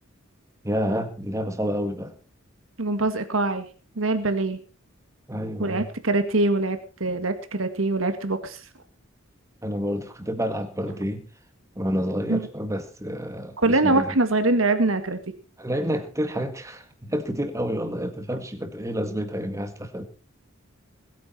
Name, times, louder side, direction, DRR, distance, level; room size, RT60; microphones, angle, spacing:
voice 1, 0.6-2.1 5.3-5.9 9.6-11.3 11.8-14.1 15.6-20.0, equal, 15° right, 8 dB, 1.9 m, -29 dB
voice 2, 2.8-3.7 4.0-4.6 5.6-8.6 12.3-12.4 13.6-15.2, right 2 dB, 85° right, 9 dB, 1.9 m, -23 dB
21.0 x 9.4 x 4.4 m, 0.35 s
head